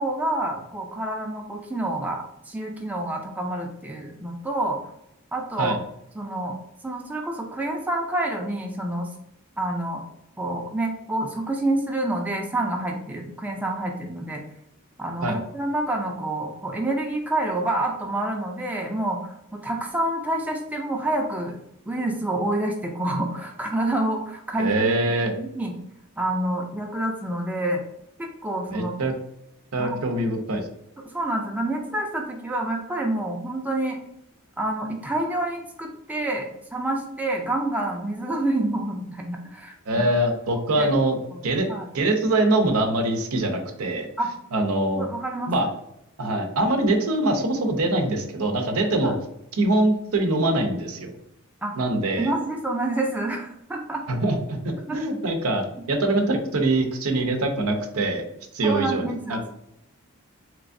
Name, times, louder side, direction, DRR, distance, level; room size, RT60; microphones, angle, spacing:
voice 1, 0.0-4.8 5.3-5.8 6.2-6.5 6.8-9.1 9.6-10.0 10.4-14.4 15.0-21.6 21.9-25.7 26.2-27.8 28.4-28.9 29.8-30.1 31.0-34.0 34.6-40.1 40.8-40.9 41.3-41.4 41.7-41.9 44.2-44.3 45.0-45.5 49.0-49.1 51.6-51.7 52.2-54.0 54.9-55.0 55.8-55.9 58.6-59.5, right 1 dB, 5° right, 0 dB, 0.4 m, -28 dB
voice 2, 24.6-25.3 28.7-29.1 29.7-30.7 39.9-41.7 41.9-44.1 44.5-45.1 45.5-45.7 46.2-49.1 49.6-51.1 51.8-52.3 54.1-58.3 58.5-59.4, right 2 dB, 85° right, 4 dB, 0.6 m, -23 dB
3.4 x 3.0 x 2.5 m, 0.80 s
head